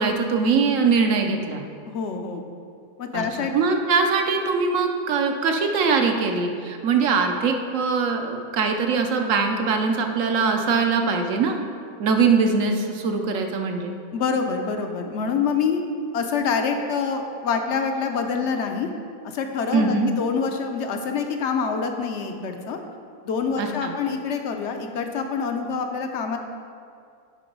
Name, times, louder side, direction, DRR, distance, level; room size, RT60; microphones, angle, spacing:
voice 1, 0.0-1.6 3.1-3.2 3.5-11.6 12.0-13.9 19.7-20.1 23.6-23.9, right 4 dB, 65° right, 4 dB, 1.0 m, -22 dB
voice 2, 1.9-2.4 3.0-3.5 14.1-15.8 16.1-18.9 19.3-22.8 23.2-26.4, left 5 dB, 60° left, 5 dB, 0.8 m, -26 dB
9.9 x 3.9 x 5.2 m, 2.3 s
omnidirectional pair, 1.5 m